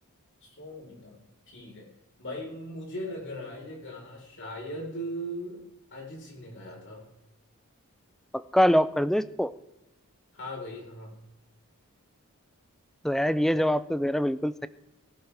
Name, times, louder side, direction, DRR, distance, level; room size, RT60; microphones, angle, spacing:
voice 1, 0.4-1.2 1.5-1.9 2.2-5.6 5.9-7.0 10.3-11.1, equal, 55° left, -1 dB, 4.3 m, -39 dB
voice 2, 8.5-9.5 13.0-14.7, equal, ahead, 15 dB, 0.4 m, -24 dB
18.5 x 12.0 x 3.4 m, 1.0 s
head